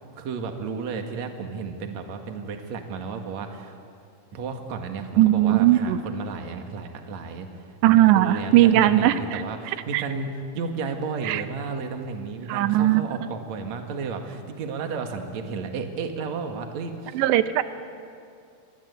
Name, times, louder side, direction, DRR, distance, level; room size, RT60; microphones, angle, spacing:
voice 1, 0.2-3.8 4.3-7.5 7.9-17.2, right 5 dB, 50° right, 4 dB, 2.7 m, -33 dB
voice 2, 5.2-6.0 7.8-9.4 9.9-10.0 11.3-11.4 12.5-13.0 17.1-17.6, right 14 dB, 90° right, 11 dB, 3.0 m, -18 dB
27.0 x 24.0 x 8.4 m, 2.4 s
omnidirectional pair, 4.9 m